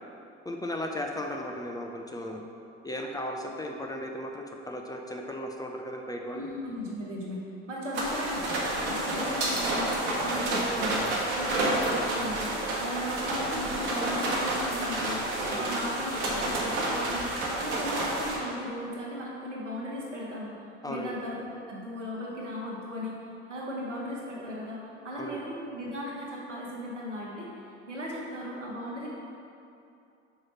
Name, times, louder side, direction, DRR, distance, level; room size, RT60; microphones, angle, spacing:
voice 1, 0.4-2.4 2.8-6.5 15.5-15.7 20.8-21.2 25.2-25.4, left 1 dB, 10° left, 1 dB, 0.5 m, -36 dB
voice 2, 6.3-8.6 8.9-23.1 23.5-27.5 27.9-29.1, equal, 90° right, -4 dB, 1.1 m, -37 dB
sound 1, 7.9-18.4, right 1 dB, 70° right, 1.2 m, -29 dB
6.1 x 4.7 x 4.2 m, 2.6 s
figure-of-eight pair, 60°, 35 cm